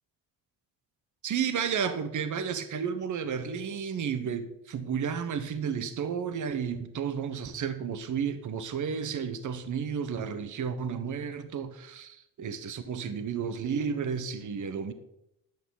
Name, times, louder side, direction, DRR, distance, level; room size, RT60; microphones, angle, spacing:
voice 1, 1.2-14.9, right 7 dB, 45° right, 10 dB, 1.1 m, -32 dB
12.0 x 8.8 x 4.0 m, 0.82 s
hypercardioid pair, 60°, 43 cm